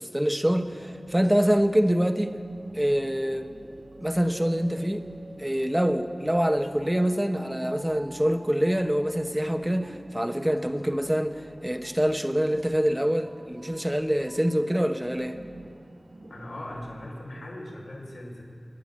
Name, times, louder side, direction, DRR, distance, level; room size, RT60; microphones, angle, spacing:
voice 1, 0.0-2.4 2.7-3.5 4.0-5.1 5.4-15.4, equal, 10° right, 1.1 m, -25 dB
sound 1, 0.6-17.1, right 2 dB, 60° right, 1.1 m, -48 dB
voice 2, 16.3-18.4, left 1 dB, 80° left, 5.9 m, -39 dB
28.0 x 11.0 x 9.1 m
wide cardioid pair, 70°, 0 cm